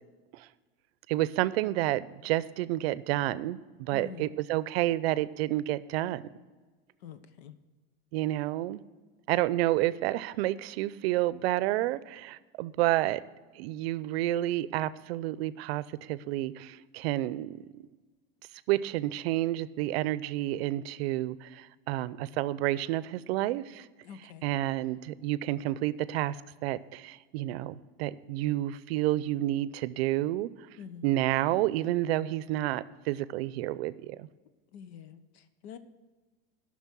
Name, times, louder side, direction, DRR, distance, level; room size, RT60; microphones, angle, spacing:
voice 1, 1.1-6.2 8.1-8.8 9.3-13.2 13.6-17.8 18.7-23.9 24.4-26.4 26.6-30.5 31.0-34.3, right 15 dB, 75° right, 17 dB, 0.6 m, -30 dB
voice 2, 3.9-4.3 7.0-7.6 24.0-24.4 30.8-31.1 34.7-35.8, left 7 dB, 80° left, 12 dB, 1.0 m, -46 dB
12.0 x 6.2 x 6.1 m, 1.3 s
supercardioid pair, 155°, 31 cm